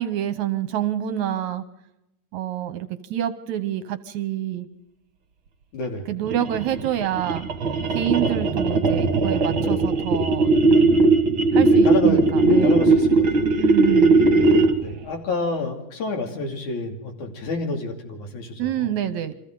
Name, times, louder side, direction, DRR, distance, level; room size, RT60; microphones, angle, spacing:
voice 1, 0.0-1.6 2.3-4.7 6.1-7.5 7.9-10.6 11.5-12.9 13.6-14.2 18.6-19.3, right 11 dB, 70° right, 12 dB, 2.0 m, -27 dB
voice 2, 5.7-6.1 11.7-13.6 14.8-18.9, left 3 dB, 65° left, 3 dB, 4.1 m, -29 dB
sound 1, 6.2-14.9, right 3 dB, 45° right, 1.9 m, -18 dB
29.0 x 24.5 x 3.9 m, 0.87 s
omnidirectional pair, 3.8 m